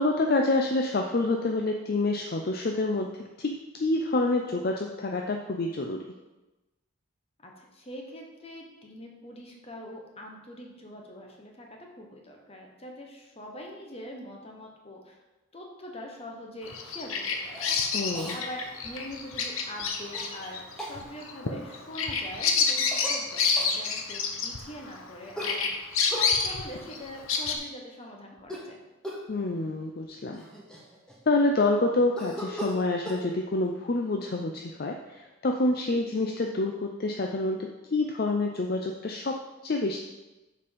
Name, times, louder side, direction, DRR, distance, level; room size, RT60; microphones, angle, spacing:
voice 1, 0.0-3.1 3.4-6.0 17.9-18.4 29.3-30.4 31.3-40.0, left 2 dB, 45° left, 3 dB, 0.5 m, -27 dB
voice 2, 7.4-15.2 15.5-17.7 18.3-28.8, equal, 30° left, 1 dB, 1.1 m, -43 dB
Bird vocalization bird call bird song, 16.7-25.1 25.4-27.6, left 5 dB, 75° left, 0.9 m, -29 dB
Cough, 17.5-17.8 18.1-18.4 20.1-20.3 20.8-21.0 22.9-23.2 23.6-23.8 25.3-26.3 28.4-28.7 29.0-29.3 30.0-30.1 30.3-31.4 32.2-33.2, equal, 5° left, 1.1 m, -37 dB
6.8 x 5.3 x 5.2 m, 1.1 s
head